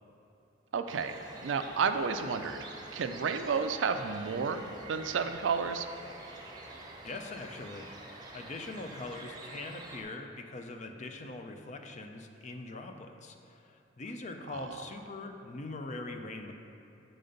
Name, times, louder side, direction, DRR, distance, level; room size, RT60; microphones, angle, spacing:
voice 1, 0.7-2.6 2.9-5.9 14.5-14.9, right 5 dB, 85° right, 8 dB, 0.4 m, -32 dB
sound 1, 0.9-10.0, right 2 dB, 25° right, 0.7 m, -47 dB
voice 2, 7.0-16.5, left 2 dB, 40° left, 5 dB, 0.4 m, -42 dB
7.6 x 4.0 x 5.1 m, 2.9 s
head